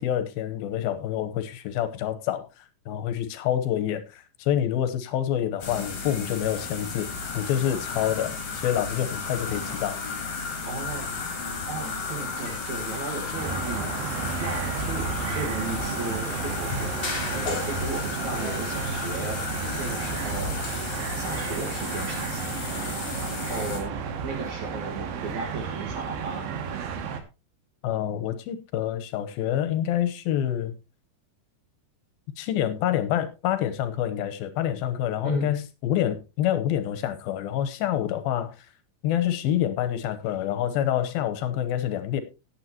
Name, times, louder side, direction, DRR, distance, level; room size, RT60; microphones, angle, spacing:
voice 1, 0.0-2.5 2.9-7.1 7.3-10.0 27.8-30.7 32.4-38.7 39.0-42.2, left 11 dB, 85° left, 11 dB, 2.9 m, -27 dB
sound 1, 5.6-23.8, left 4 dB, 65° left, 4.6 m, -33 dB
voice 2, 10.6-11.1 11.7-13.9 14.4-16.9 17.3-19.4 19.8-20.6 21.2-22.4 22.7-23.9 24.2-26.5 35.2-35.5, right 3 dB, 55° right, 0 dB, 2.8 m, -36 dB
sound 2, 13.4-27.2, right 6 dB, 80° right, 3.2 m, -32 dB
sound 3, 17.0-18.1, left 2 dB, 20° left, 1.8 m, -35 dB
17.5 x 7.7 x 2.9 m, 0.28 s
omnidirectional pair, 4.2 m